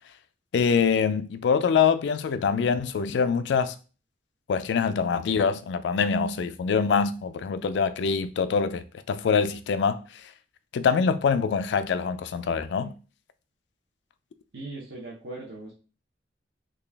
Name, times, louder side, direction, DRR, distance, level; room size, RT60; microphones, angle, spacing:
voice 1, 0.5-3.7 4.5-10.0 10.7-12.9, left 6 dB, 70° left, 0.3 m, -24 dB
voice 2, 14.5-15.7, right 2 dB, 70° right, 0.8 m, -39 dB
3.9 x 2.4 x 3.3 m
head